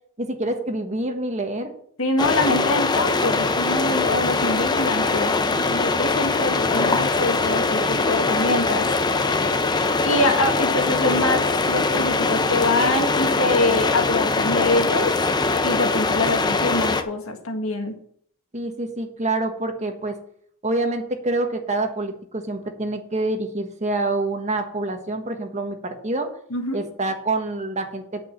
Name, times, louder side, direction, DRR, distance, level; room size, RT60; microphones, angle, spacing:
voice 1, 0.2-1.7 18.5-20.2 20.6-26.3 26.7-28.2, right 2 dB, 35° right, 5 dB, 1.4 m, -26 dB
voice 2, 2.0-8.9 10.0-15.1 15.6-18.0 26.5-26.8, left 2 dB, 85° left, 4 dB, 1.8 m, -24 dB
sound 1, 2.2-17.0, left 3 dB, 20° left, 0.6 m, -22 dB
9.6 x 5.2 x 7.4 m, 0.62 s
head